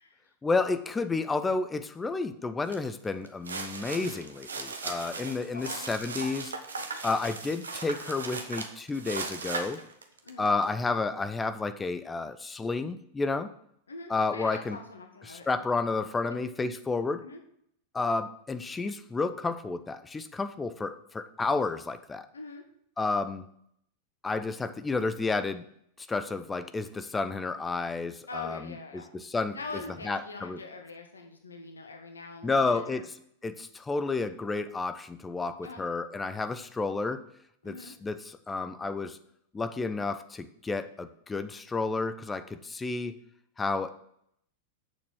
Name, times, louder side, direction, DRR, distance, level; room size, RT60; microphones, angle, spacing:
voice 1, 0.4-6.5 7.0-9.8 10.4-13.5 14.1-14.8 15.3-17.2 17.9-22.3 23.0-23.5 24.2-25.6 26.0-29.6 30.0-30.6 32.4-33.1 33.4-37.2 37.6-39.2 39.5-43.2 43.6-44.0, left 3 dB, 15° left, 11 dB, 0.7 m, -31 dB
sound 1, 2.7-2.9 3.3-10.6, right 4 dB, 70° right, 1.0 m, -38 dB
voice 2, 5.5-6.1 10.2-10.5 13.9-15.7 16.3-16.4 17.2-17.4 22.3-22.6 28.3-29.1 29.5-33.0 35.6-35.8 37.6-37.9, left 3 dB, 75° left, 3 dB, 1.3 m, -43 dB
7.9 x 6.9 x 6.3 m, 0.70 s
figure-of-eight pair, 90°, 0 cm